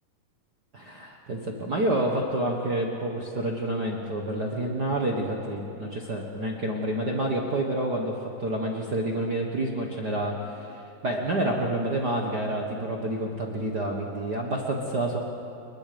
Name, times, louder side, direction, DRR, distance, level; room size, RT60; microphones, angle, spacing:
voice 1, 0.7-15.2, right 1 dB, 50° right, 0 dB, 1.2 m, -28 dB
28.0 x 21.5 x 5.2 m, 3.0 s
omnidirectional pair, 4.2 m